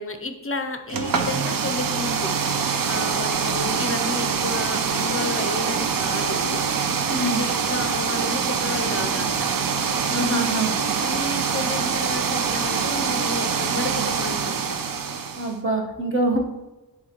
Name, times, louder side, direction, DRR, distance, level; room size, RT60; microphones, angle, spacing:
voice 1, 0.0-2.3 2.9-6.6 7.2-9.5 11.0-14.8, left 3 dB, 35° left, 6 dB, 0.6 m, -32 dB
sound 1, 0.9-15.5, right 6 dB, 60° right, 0.6 m, -24 dB
voice 2, 7.0-7.4 10.1-10.7 15.3-16.4, right 1 dB, 30° right, 0 dB, 1.2 m, -24 dB
9.3 x 3.6 x 3.0 m, 1.1 s
wide cardioid pair, 100°, 39 cm